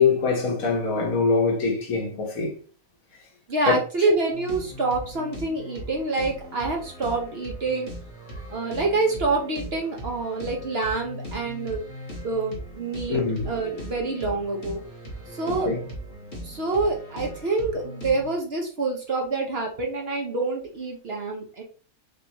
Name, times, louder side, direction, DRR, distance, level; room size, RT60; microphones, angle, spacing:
voice 1, 0.0-2.6 3.7-3.8 13.1-13.5 15.5-15.8, left 4 dB, 70° left, 1.6 m, -23 dB
voice 2, 3.5-7.9 8.5-11.8 12.2-14.8 15.3-15.7 16.4-21.6, right 3 dB, 50° right, 0.9 m, -27 dB
sound 1, 4.3-18.4, equal, 40° left, 1.7 m, -39 dB
5.3 x 3.1 x 2.9 m
omnidirectional pair, 1.5 m